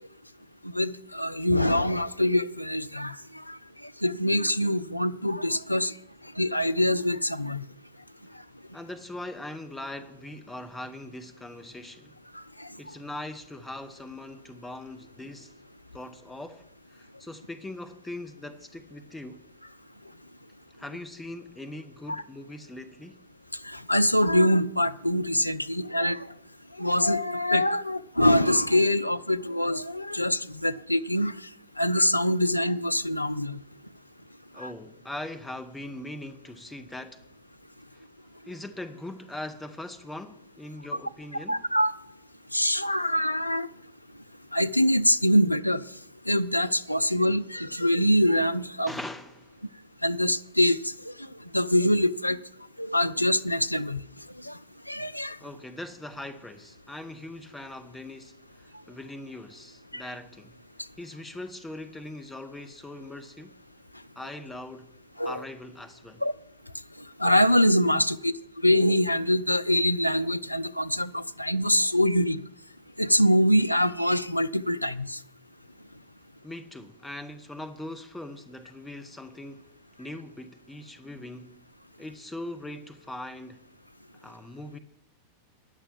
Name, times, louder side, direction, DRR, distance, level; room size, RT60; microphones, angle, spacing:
voice 1, 0.6-5.9 6.4-7.6 12.3-12.7 22.1-22.2 23.6-26.3 26.8-31.4 31.8-33.6 34.6-34.7 41.5-41.9 42.5-43.7 44.5-45.8 46.3-48.9 50.0-51.1 51.5-52.4 52.8-54.0 54.4-54.6 54.9-55.4 59.9-60.0 65.2-65.4 66.2-66.3 67.2-68.3 68.6-72.4 73.0-75.2, left 1 dB, 85° left, 0.4 m, -24 dB
voice 2, 8.7-12.1 12.8-15.5 15.9-19.5 20.8-23.2 34.5-37.2 37.9-38.0 38.4-41.6 48.9-49.6 55.4-60.6 61.0-63.6 64.2-64.9 65.2-66.2 76.4-79.7 80.0-81.6 82.0-83.6 84.1-84.8, left 1 dB, 5° left, 0.8 m, -41 dB
9.9 x 6.9 x 9.2 m
figure-of-eight pair, 90°, 0 cm